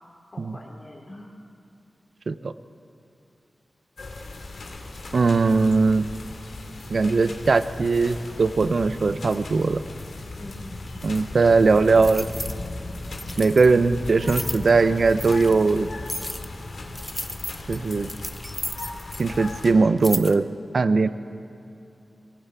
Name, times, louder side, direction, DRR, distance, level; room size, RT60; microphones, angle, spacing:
voice 1, 0.3-1.3 10.3-10.8 21.0-21.1, left 1 dB, 30° left, 0 dB, 3.5 m, -43 dB
sound 1, 4.0-19.7, left 2 dB, 75° left, 2.5 m, -37 dB
voice 2, 5.1-6.1 6.9-9.8 11.0-12.3 13.4-15.9 17.7-18.1 19.2-20.5 20.7-21.1, right 4 dB, 55° right, 12 dB, 0.8 m, -20 dB
sound 2, 11.7-12.6 13.1-13.7 14.2-14.7 15.2-15.5 16.1-16.5 16.9-19.3 19.6-19.7 20.0-20.3, left 1 dB, 10° left, 0.9 m, -34 dB
23.5 x 17.5 x 8.2 m, 2.7 s
wide cardioid pair, 125°, 0 cm